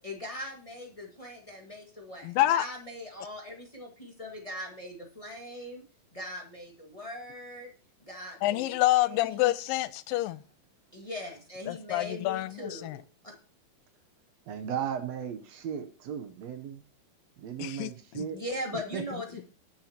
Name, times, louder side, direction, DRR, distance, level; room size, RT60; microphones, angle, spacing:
voice 1, 0.0-5.8 6.1-7.7 8.0-8.6 8.9-9.4 10.9-13.3 18.3-19.5, left 1 dB, 30° left, 0.5 m, -40 dB
voice 2, 2.2-2.7 8.4-10.4 11.7-13.0 17.6-17.9 18.2-18.3, left 15 dB, 80° left, 2.3 m, -27 dB
voice 3, 14.5-16.8 17.4-18.4 18.7-19.0, right 8 dB, 75° right, 1.5 m, -36 dB
21.0 x 7.3 x 2.9 m
omnidirectional pair, 4.3 m